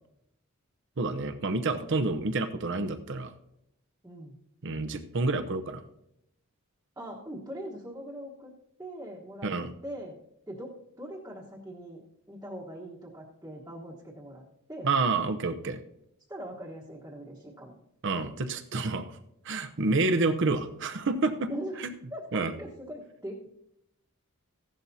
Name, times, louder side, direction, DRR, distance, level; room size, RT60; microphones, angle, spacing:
voice 1, 1.0-3.3 4.6-5.8 9.4-9.7 14.8-15.8 18.0-19.0 19.4-21.5 21.8-21.9 22.3-22.5, right 3 dB, 55° right, 9 dB, 0.7 m, -28 dB
voice 2, 4.0-4.4 7.0-8.5 8.8-9.5 9.8-10.2 10.5-14.4 14.7-14.9 16.3-17.8 21.5-21.8 22.1-23.5, equal, 10° right, -6 dB, 1.2 m, -41 dB
15.5 x 11.5 x 2.7 m, 0.81 s
head